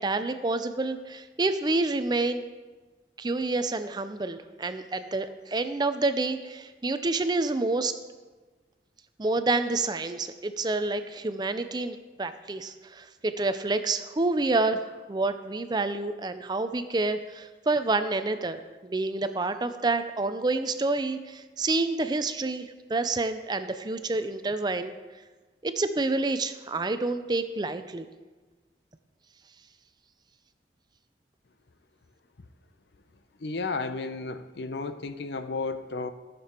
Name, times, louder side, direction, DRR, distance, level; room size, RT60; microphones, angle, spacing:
voice 1, 0.0-2.4 3.2-7.9 9.2-24.9 25.6-28.1, right 3 dB, 25° right, 10 dB, 0.5 m, -28 dB
voice 2, 33.4-36.1, left 3 dB, 75° left, 10 dB, 0.7 m, -33 dB
14.5 x 6.8 x 4.4 m, 1.3 s
head